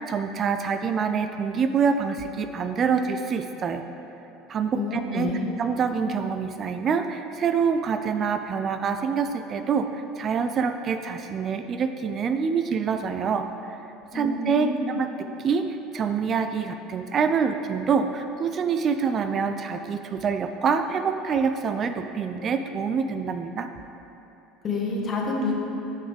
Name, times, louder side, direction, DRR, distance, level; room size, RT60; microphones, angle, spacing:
voice 1, 0.0-3.8 4.5-5.3 5.6-13.8 14.1-23.7, right 6 dB, 40° right, 8 dB, 0.4 m, -26 dB
voice 2, 4.7-5.5 14.1-15.0 24.6-25.6, left 3 dB, 35° left, -1 dB, 1.4 m, -28 dB
9.2 x 5.7 x 3.3 m, 2.9 s
hypercardioid pair, 70°, 0 cm